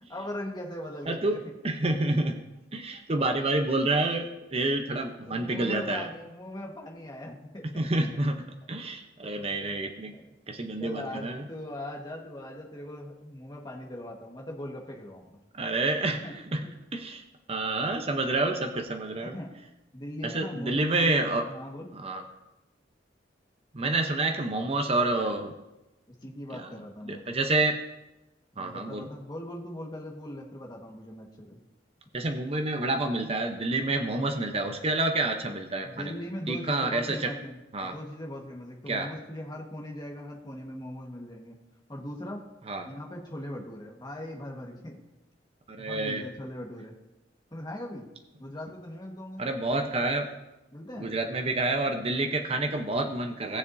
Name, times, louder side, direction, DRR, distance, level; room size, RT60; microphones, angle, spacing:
voice 1, 0.1-1.4 5.2-7.9 9.6-9.7 10.1-10.3 10.8-15.4 16.0-16.3 16.6-16.7 17.9-18.1 19.2-19.6 19.9-21.2 21.4-21.9 26.1-27.3 28.6-31.6 35.8-41.6 41.9-42.4 42.8-45.0 45.8-47.0 47.5-48.1 48.4-49.4 50.7-51.1, left 1 dB, 20° left, -1 dB, 1.4 m, -40 dB
voice 2, 1.1-1.4 1.6-2.4 2.7-6.1 7.8-8.3 8.7-10.1 10.5-11.5 15.5-16.2 16.5-16.6 16.9-17.2 17.5-19.4 20.2-21.4 21.9-22.2 23.7-25.5 26.5-26.7 27.1-27.8 28.6-29.1 32.1-36.1 36.5-37.3 37.7-37.9 38.9-39.1 42.7-42.9 45.7-46.2 49.4-50.3 51.0-53.6, right 2 dB, 30° right, 4 dB, 0.8 m, -28 dB
18.5 x 7.1 x 2.7 m, 0.99 s
head